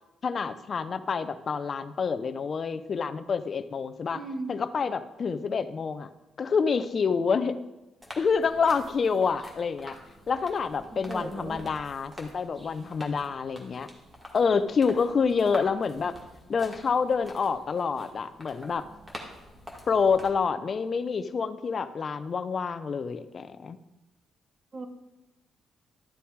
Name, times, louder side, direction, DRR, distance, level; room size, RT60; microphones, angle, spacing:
voice 1, 0.2-4.2 4.5-6.1 6.4-7.6 8.2-10.0 10.3-13.9 14.3-16.1 16.5-18.9 19.9-23.8, left 5 dB, 40° left, 11 dB, 0.6 m, -27 dB
voice 2, 4.1-4.5 10.9-11.6 24.7-24.9, right 3 dB, 30° right, 7 dB, 1.1 m, -36 dB
sound 1, 8.0-20.3, equal, 10° right, 2.0 m, -47 dB
12.5 x 6.9 x 4.7 m, 1.0 s
cardioid pair, 120°, 0 cm